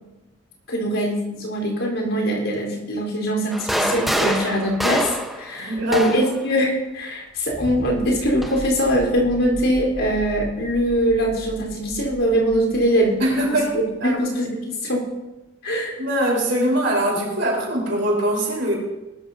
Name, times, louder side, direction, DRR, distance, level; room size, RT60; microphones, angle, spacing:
voice 1, 0.7-13.6 14.0-15.0 15.6-16.0, equal, 70° left, -1 dB, 4.2 m, -22 dB
sound 1, 3.5-6.4 7.5-8.6, equal, ahead, 1.0 m, -25 dB
voice 2, 5.6-6.1 13.2-13.7 14.0-14.2 16.0-18.7, right 1 dB, 55° right, -2 dB, 4.2 m, -22 dB
sound 2, 7.5-14.2, right 1 dB, 35° left, 3.4 m, -38 dB
20.0 x 13.0 x 2.8 m, 1.0 s
head